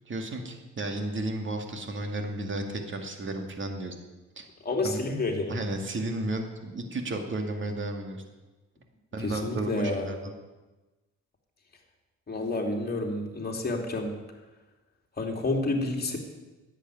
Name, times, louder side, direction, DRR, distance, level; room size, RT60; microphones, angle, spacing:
voice 1, 0.1-3.9 4.4-4.5 4.8-5.0 5.5-8.2 9.1-10.3, right 2 dB, 40° right, 4 dB, 2.2 m, -33 dB
voice 2, 4.6-5.6 9.2-10.1 12.3-14.1 15.2-16.2, left 2 dB, 30° left, 1 dB, 2.9 m, -29 dB
10.5 x 8.3 x 9.4 m, 1.1 s
cardioid pair, 90°, 30 cm